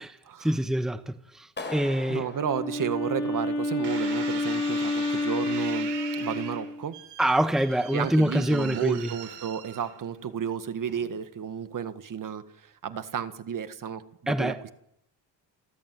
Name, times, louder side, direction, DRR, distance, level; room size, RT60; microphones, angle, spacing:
voice 1, 0.4-2.3 7.2-9.1 14.3-14.6, right 1 dB, ahead, 1.2 m, -25 dB
Clapping, 1.6-3.6, left 3 dB, 25° left, 5.9 m, -41 dB
voice 2, 2.1-5.9 6.1-7.0 7.9-14.7, right 8 dB, 50° right, 1.9 m, -32 dB
Wind instrument woodwind instrument, 2.3-6.8, left 2 dB, 65° left, 6.7 m, -29 dB
sound 1, 3.8-10.2 10.9-11.3, right 9 dB, 85° right, 6.5 m, -41 dB
29.0 x 12.5 x 7.8 m
cardioid pair, 100°, 42 cm